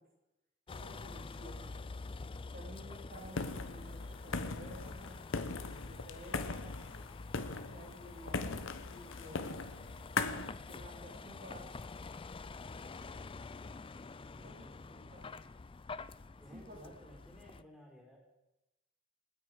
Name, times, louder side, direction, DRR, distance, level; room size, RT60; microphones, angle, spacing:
Vehicle, 0.7-17.6, left 3 dB, 25° left, 0.4 m, -47 dB
voice 1, 0.7-1.7 2.5-5.2 5.8-6.8 7.7-9.6 10.7-11.7 14.4-15.3 16.5-16.8, equal, 45° right, -1 dB, 3.5 m, -52 dB
sound 1, 3.2-10.5, left 4 dB, 65° left, 1.1 m, -40 dB
voice 2, 14.3-15.1 16.4-18.2, equal, ahead, -2 dB, 4.4 m, -57 dB
28.0 x 9.5 x 5.0 m, 0.95 s
head